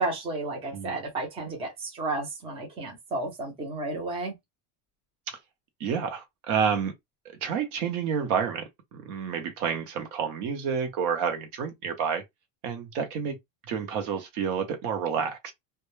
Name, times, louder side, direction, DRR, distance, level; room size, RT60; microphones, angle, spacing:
voice 1, 0.0-4.4, right 2 dB, 15° right, 0.5 m, -32 dB
voice 2, 5.8-6.9 7.2-12.2 12.6-13.4 13.7-15.5, right 7 dB, 55° right, 0.7 m, -29 dB
2.2 x 2.1 x 3.0 m
cardioid pair, 170°, 40 cm